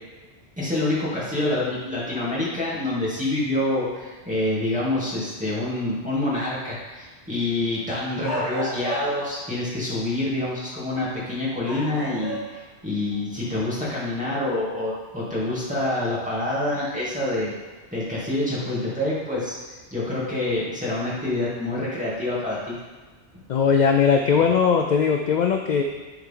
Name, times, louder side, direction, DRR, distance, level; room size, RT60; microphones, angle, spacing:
voice 1, 0.6-17.5 17.9-22.8, left 2 dB, 5° right, -9 dB, 2.5 m, -27 dB
sound 1, 8.2-9.4 10.9-11.1 11.6-12.7 13.1-13.2 15.6-15.7 17.3-17.6, right 1 dB, 15° left, 2.2 m, -32 dB
voice 2, 23.5-25.8, left 6 dB, 55° left, 3 dB, 0.5 m, -19 dB
10.5 x 4.6 x 3.7 m, 1.3 s
omnidirectional pair, 1.2 m